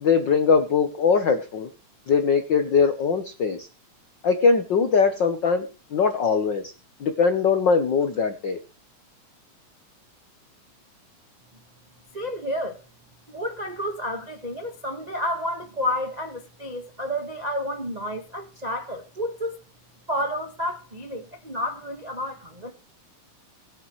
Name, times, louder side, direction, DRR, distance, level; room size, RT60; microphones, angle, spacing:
voice 1, 0.0-1.7 2.1-3.7 4.2-6.6 7.0-8.6, left 5 dB, 70° left, 1.0 m, -21 dB
voice 2, 12.1-12.8 13.3-19.6 20.1-22.7, left 1 dB, 40° right, 0.5 m, -30 dB
20.5 x 8.7 x 3.2 m
omnidirectional pair, 3.5 m